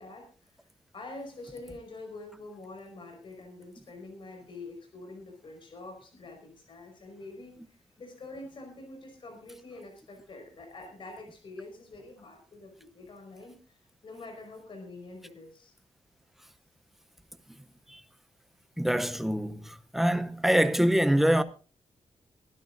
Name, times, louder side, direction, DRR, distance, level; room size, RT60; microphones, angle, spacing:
voice 1, 0.0-15.7, left 2 dB, 50° left, 5.2 m, -46 dB
voice 2, 18.8-21.4, equal, ahead, 0.7 m, -25 dB
24.0 x 12.0 x 2.6 m
wide cardioid pair, 155°, 11 cm